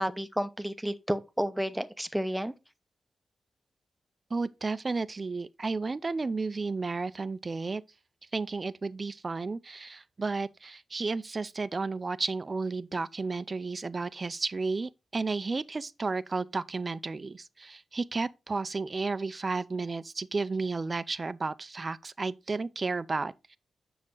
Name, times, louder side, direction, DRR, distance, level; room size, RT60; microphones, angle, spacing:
voice 1, 0.0-2.5, equal, 5° right, 0.9 m, -31 dB
voice 2, 4.3-7.8 8.3-23.6, right 3 dB, 40° right, 0.6 m, -32 dB
7.5 x 6.0 x 3.9 m
cardioid pair, 55°, 0 cm